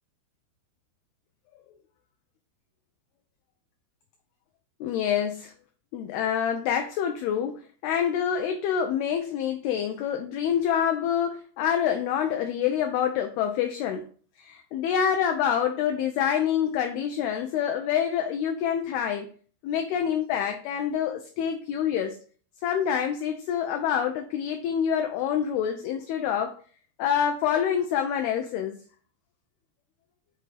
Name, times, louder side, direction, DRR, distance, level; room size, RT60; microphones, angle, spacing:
voice 1, 4.8-5.5 5.9-14.1 14.4-19.3 19.6-22.2 22.6-26.6 27.0-28.8, left 8 dB, 80° left, 5 dB, 2.2 m, -26 dB
7.6 x 3.7 x 4.0 m, 0.42 s
omnidirectional pair, 5.1 m